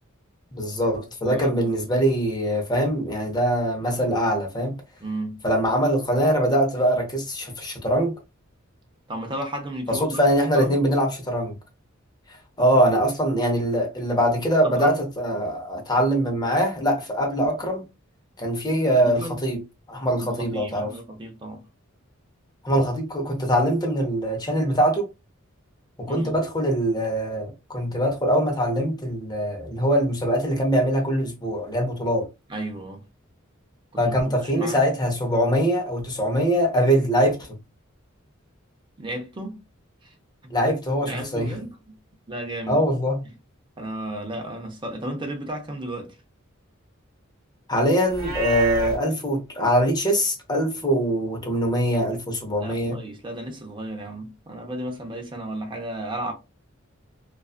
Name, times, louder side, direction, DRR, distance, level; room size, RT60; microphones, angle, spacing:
voice 1, 0.5-4.8 5.4-8.2 9.9-11.5 12.6-17.8 18.4-19.6 19.9-20.9 22.6-25.1 26.0-32.3 34.0-37.5 40.5-41.5 42.7-43.2 47.7-53.0, equal, 20° left, 0.7 m, -23 dB
voice 2, 1.2-1.8 5.0-5.4 9.1-10.2 10.5-10.8 14.6-15.0 19.0-19.4 20.2-21.6 26.1-26.3 32.5-33.0 34.0-34.8 39.0-39.6 40.0-40.1 41.0-42.0 42.3-42.8 43.8-46.2 52.6-56.3, right 1 dB, 25° right, 0.6 m, -34 dB
Livestock farm animals working animals, 48.1-49.0, right 4 dB, 50° right, 0.9 m, -29 dB
2.4 x 2.3 x 2.3 m
head